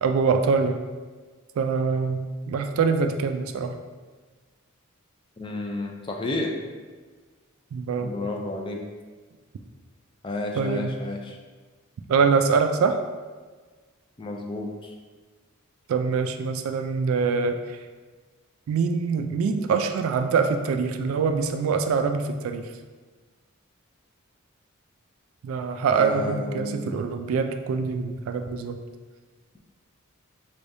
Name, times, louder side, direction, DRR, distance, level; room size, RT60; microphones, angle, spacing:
voice 1, 0.0-0.8 1.6-3.7 7.7-8.1 10.6-10.9 12.1-13.0 15.9-17.5 18.7-22.7 25.4-28.8, right 5 dB, 75° right, 7 dB, 0.3 m, -24 dB
voice 2, 5.4-6.6 8.0-8.8 10.2-11.4 14.2-15.0 25.9-27.0, left 2 dB, 25° left, 1 dB, 0.4 m, -31 dB
3.5 x 3.3 x 2.6 m, 1.4 s
head